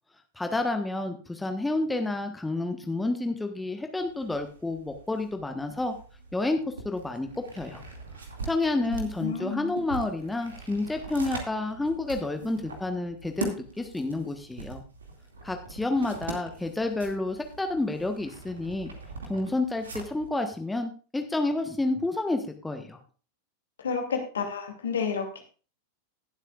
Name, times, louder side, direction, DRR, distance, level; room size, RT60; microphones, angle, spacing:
voice 1, 0.4-5.9 6.3-7.8 8.4-14.8 15.4-18.9 19.3-23.0, left 2 dB, 5° left, 5 dB, 1.3 m, -30 dB
sound 1, 4.0-20.3, right 3 dB, 70° right, 2.3 m, -42 dB
voice 2, 9.2-9.7 23.8-25.4, left 6 dB, 65° left, 3 dB, 2.5 m, -30 dB
19.5 x 8.1 x 2.5 m, 0.37 s
figure-of-eight pair, 90°, 0 cm